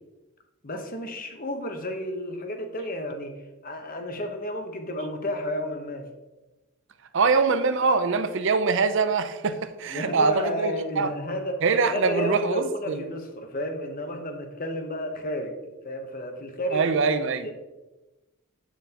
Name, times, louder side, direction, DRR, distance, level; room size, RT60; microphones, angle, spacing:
voice 1, 0.6-3.3 3.6-6.0 9.9-11.6 11.9-15.6 15.8-16.9 17.4-17.5, left 1 dB, 40° left, 5 dB, 1.0 m, -32 dB
voice 2, 7.1-11.1 11.6-13.0 16.7-17.5, right 4 dB, 55° right, 11 dB, 0.6 m, -23 dB
9.1 x 7.1 x 2.9 m, 1.1 s
head